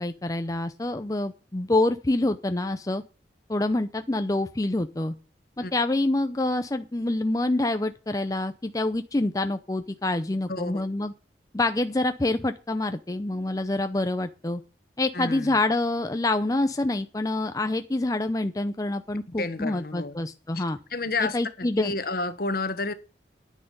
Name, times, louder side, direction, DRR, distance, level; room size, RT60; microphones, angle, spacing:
voice 1, 0.0-3.0 3.5-5.1 5.6-11.1 11.5-14.6 15.0-20.8 21.2-21.9, left 2 dB, 20° left, 0.6 m, -26 dB
voice 2, 10.5-10.8 15.1-15.6 19.4-20.2 20.5-20.6 20.9-22.9, left 3 dB, 55° left, 1.4 m, -30 dB
10.5 x 9.9 x 5.4 m
head